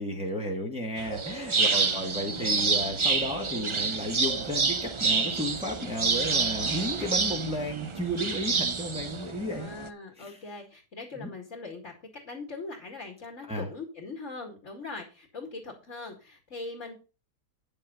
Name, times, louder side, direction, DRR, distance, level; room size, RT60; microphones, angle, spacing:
voice 1, 0.0-9.7 10.2-10.4 11.2-11.3 13.5-13.7, equal, 5° right, 0 dB, 2.0 m, -33 dB
sound 1, 1.0-9.9, right 4 dB, 50° right, 0.3 m, -28 dB
voice 2, 1.7-2.1 9.5-16.9, left 3 dB, 50° left, 2 dB, 2.5 m, -41 dB
9.9 x 7.3 x 5.3 m, 0.32 s
omnidirectional pair, 1.7 m